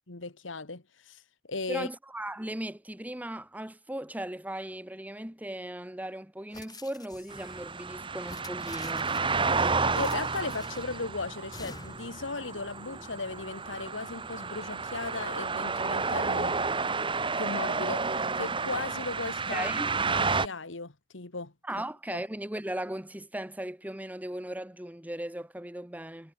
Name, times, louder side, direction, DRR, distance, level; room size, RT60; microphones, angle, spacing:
voice 1, 0.1-1.2 1.5-1.9 9.6-16.6 17.4-19.7 20.0-21.5 22.1-22.2, left 3 dB, 90° left, 1.9 m, -37 dB
voice 2, 1.7-9.1 19.5-20.0 21.6-26.3, right 1 dB, 10° right, 1.4 m, -37 dB
sound 1, 6.5-7.6 8.2-9.4 9.9-11.0 11.5-12.2, left 3 dB, 20° left, 3.8 m, -48 dB
sound 2, 7.3-20.5, right 4 dB, 25° right, 1.5 m, -31 dB
head